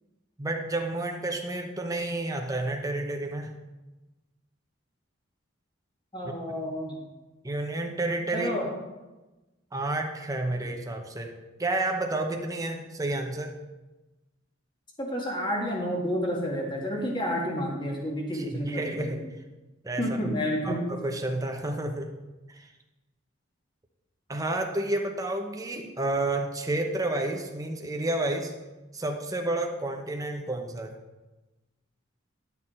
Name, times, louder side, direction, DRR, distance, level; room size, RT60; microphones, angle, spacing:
voice 1, 0.4-3.6 6.2-6.6 7.4-8.5 9.7-11.3 11.6-13.6 18.5-19.2 19.8-20.1 20.6-22.1 22.5-22.7 24.3-28.5 28.9-31.0, right 2 dB, 15° right, 3 dB, 0.9 m, -30 dB
voice 2, 6.1-7.0 8.3-8.7 15.0-19.2 20.0-20.8, equal, 25° left, -1 dB, 1.8 m, -30 dB
11.0 x 6.5 x 4.4 m, 1.1 s
head